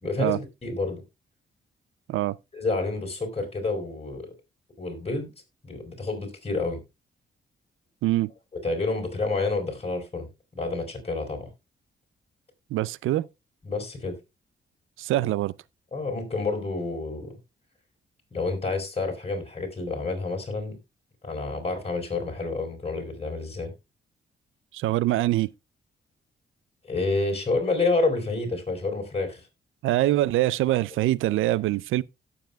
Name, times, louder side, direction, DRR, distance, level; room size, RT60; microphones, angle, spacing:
voice 1, 0.0-1.0 2.5-4.3 4.8-5.3 5.6-6.8 8.6-10.3 10.5-11.5 13.6-14.2 15.9-17.4 18.3-20.8 21.2-23.7 26.9-29.4, left 3 dB, 30° left, 4.2 m, -29 dB
voice 2, 12.7-13.3 15.0-15.5 24.7-25.5 29.8-32.0, right 15 dB, 90° right, 0.4 m, -24 dB
17.0 x 7.1 x 2.3 m
cardioid pair, 65°, 20 cm